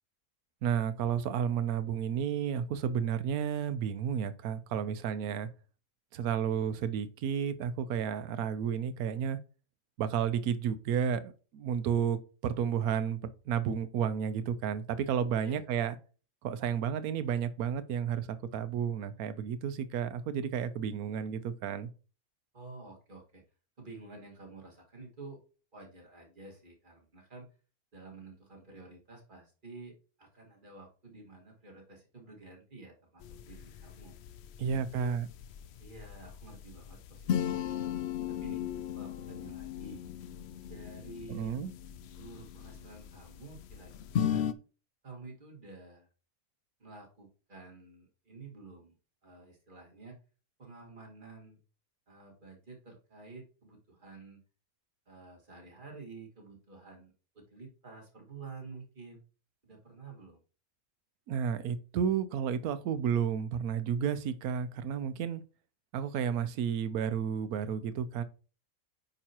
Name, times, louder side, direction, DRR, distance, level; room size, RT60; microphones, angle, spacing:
voice 1, 0.6-5.5 6.1-9.4 10.0-13.2 13.5-16.0 16.4-21.9 34.6-35.3 41.3-41.7 61.3-65.4 65.9-68.2, right 8 dB, 85° right, 1.2 m, -32 dB
voice 2, 22.5-23.4 23.8-25.4 25.7-27.5 27.9-34.1 34.6-35.2 35.8-37.9 38.3-38.6 39.0-40.0 40.7-41.6 42.2-44.5 45.0-46.1 46.8-49.0 49.2-50.2 50.6-51.6 52.1-54.4 55.1-59.2 59.6-60.4, right 3 dB, 35° right, 2.1 m, -50 dB
sound 1, 33.2-44.5, left 9 dB, 65° left, 0.7 m, -37 dB
8.9 x 5.5 x 2.9 m
omnidirectional pair, 1.5 m